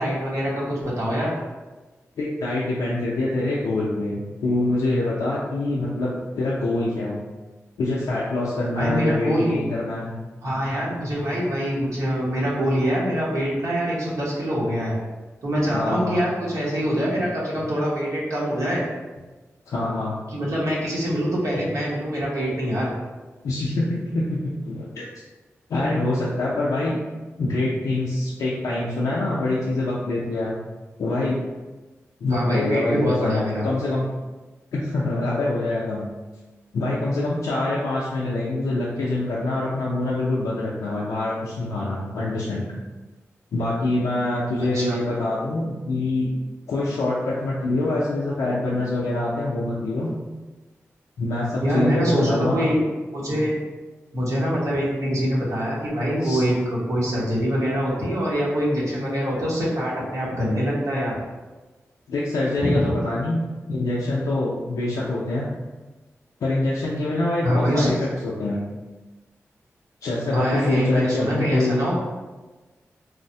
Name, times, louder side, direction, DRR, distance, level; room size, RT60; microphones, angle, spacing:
voice 1, 0.0-1.4 8.8-9.6 10.4-14.9 15.4-18.8 20.3-22.9 32.3-33.7 44.6-45.0 51.6-52.8 53.1-53.6 54.1-61.2 62.6-62.9 67.4-67.9 70.3-72.0, equal, 75° right, -6 dB, 0.9 m, -24 dB
voice 2, 2.2-6.1 6.4-7.2 7.8-10.1 15.7-16.2 19.7-20.2 23.4-24.4 24.7-25.0 25.7-27.0 27.4-30.6 31.0-31.4 32.2-34.1 34.7-36.1 36.7-42.7 43.5-46.3 46.7-50.1 51.2-52.6 56.2-56.4 62.1-63.4 63.7-65.5 66.4-68.6 70.0-71.8, left 2 dB, 85° left, -6 dB, 0.4 m, -25 dB
3.1 x 2.0 x 2.6 m, 1.2 s
cardioid pair, 40°, 6 cm